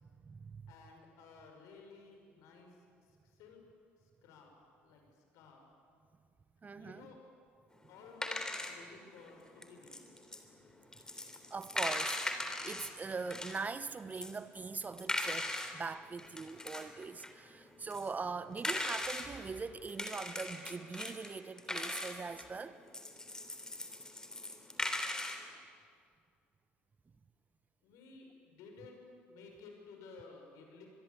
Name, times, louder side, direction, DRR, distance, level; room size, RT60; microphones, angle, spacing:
voice 1, 0.0-0.7 6.6-7.1 11.5-12.2 12.6-22.8, right 4 dB, 25° right, 14 dB, 1.0 m, -42 dB
voice 2, 0.7-2.7 3.4-3.6 4.2-4.5 4.8-5.0 5.3-5.6 6.8-7.2 7.9-10.2 27.8-30.9, left 4 dB, 65° left, 3 dB, 6.0 m, -55 dB
sound 1, 7.8-13.7 14.1-15.8 16.1-19.3 19.9-25.4, left 1 dB, 10° left, 3.5 m, -39 dB
25.5 x 22.0 x 8.4 m, 2.3 s
hypercardioid pair, 60°, 6 cm